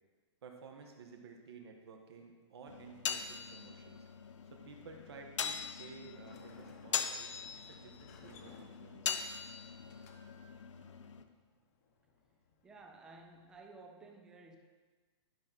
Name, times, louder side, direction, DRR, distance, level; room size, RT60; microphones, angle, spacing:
voice 1, 0.4-4.0 4.5-7.3 7.5-9.2, right 5 dB, 60° right, 2 dB, 1.3 m, -53 dB
sound 1, 2.7-11.2, left 7 dB, 80° left, 0.7 m, -41 dB
Sliding door, 6.1-13.6, left 4 dB, 30° left, 0.8 m, -62 dB
voice 2, 12.6-14.6, right 3 dB, 5° right, 3 dB, 0.3 m, -54 dB
11.0 x 6.2 x 4.1 m, 1.4 s
hypercardioid pair, 170°, 15 cm